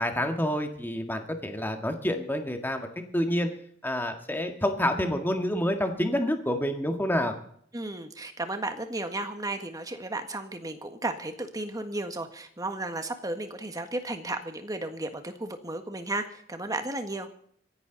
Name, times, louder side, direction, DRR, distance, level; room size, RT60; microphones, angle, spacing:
voice 1, 0.0-2.9 3.1-3.5 3.8-7.3, left 1 dB, 10° left, 5 dB, 1.8 m, -28 dB
voice 2, 7.7-17.3, right 2 dB, 20° right, 7 dB, 1.6 m, -34 dB
25.5 x 11.0 x 4.0 m, 0.64 s
head